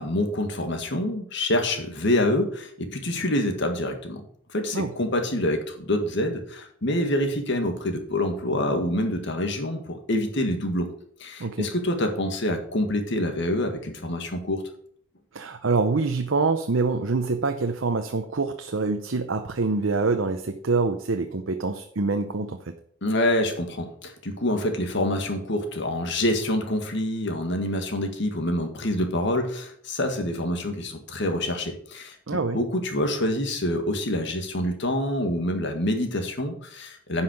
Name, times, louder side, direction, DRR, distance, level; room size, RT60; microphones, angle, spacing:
voice 1, 0.0-4.2 4.5-10.9 11.2-14.6 23.0-32.2 32.5-37.2, left 1 dB, 60° left, 5 dB, 1.8 m, -26 dB
voice 2, 15.3-22.7 32.3-32.6, right 3 dB, 65° right, 7 dB, 0.7 m, -25 dB
10.5 x 5.7 x 6.5 m, 0.63 s
head